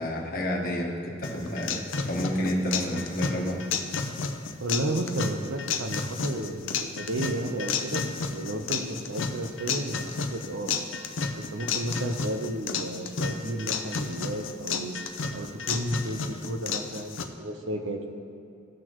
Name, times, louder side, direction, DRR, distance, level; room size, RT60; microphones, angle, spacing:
voice 1, 0.0-3.6, equal, 45° left, 0 dB, 1.3 m, -30 dB
sound 1, 1.2-17.2, left 5 dB, 70° left, 0.6 m, -32 dB
voice 2, 4.6-10.7 11.4-14.9 15.3-18.1, right 1 dB, 70° right, 5 dB, 0.8 m, -33 dB
15.5 x 6.2 x 3.0 m, 2.7 s
head